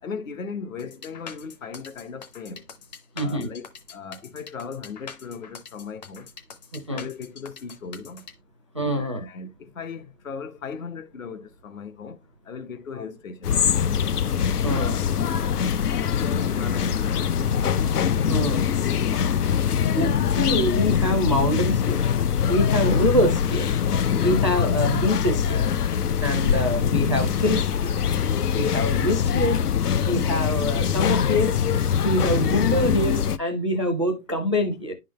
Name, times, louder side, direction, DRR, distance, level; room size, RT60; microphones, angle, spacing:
voice 1, 0.0-2.6 3.2-6.3 6.9-8.2 9.0-12.2 12.4-13.6 15.5-17.6 19.6-19.9 28.6-28.9, left 5 dB, 60° left, 1.3 m, -37 dB
sound 1, 0.8-8.3, left 6 dB, 30° left, 0.8 m, -43 dB
voice 2, 3.2-3.5 6.7-7.0 8.7-9.2 14.6-15.0 18.3-18.7 19.9-22.1 22.5-23.7 24.0-25.7 26.2-28.0 28.5-29.6 30.0-34.9, equal, 20° right, 0.4 m, -25 dB
sound 2, 13.4-33.4, left 8 dB, 85° left, 0.7 m, -23 dB
10.5 x 3.8 x 3.1 m
hypercardioid pair, 150°, 45 cm